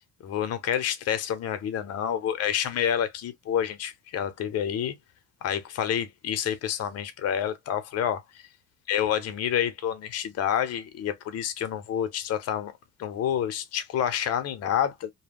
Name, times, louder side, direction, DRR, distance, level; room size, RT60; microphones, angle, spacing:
voice 1, 0.2-4.9 5.4-8.2 8.9-12.7 13.0-15.1, left 9 dB, 55° left, 0.7 m, -28 dB
2.2 x 2.1 x 3.4 m
supercardioid pair, 85°, 30 cm